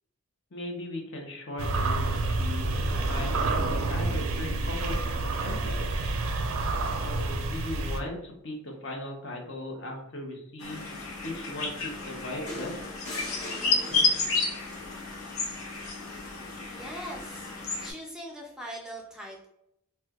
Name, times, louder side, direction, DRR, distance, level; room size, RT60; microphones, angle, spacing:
voice 1, 0.5-2.0 2.3-5.0 5.4-5.8 7.0-10.8 11.2-12.8, left 1 dB, 60° left, 1 dB, 0.8 m, -38 dB
sound 1, 1.6-8.0, right 2 dB, 80° right, 0.5 m, -28 dB
sound 2, 10.6-17.9, left 3 dB, 90° left, 0.8 m, -31 dB
sound 3, 12.5-14.6 16.0-16.2, left 1 dB, 35° left, 1.3 m, -40 dB
voice 2, 16.2-17.5 17.8-19.5, equal, 5° right, -1 dB, 0.4 m, -42 dB
4.3 x 2.2 x 2.3 m, 0.81 s
head